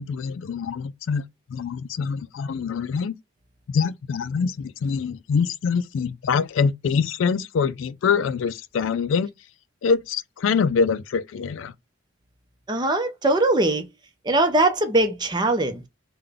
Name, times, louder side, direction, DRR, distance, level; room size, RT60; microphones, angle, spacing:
voice 1, 0.0-3.2 3.7-9.3 9.8-11.7, left 5 dB, 70° left, 0.3 m, -24 dB
voice 2, 12.7-13.9 14.2-15.9, right 2 dB, 20° right, 0.6 m, -21 dB
3.7 x 2.2 x 3.4 m
head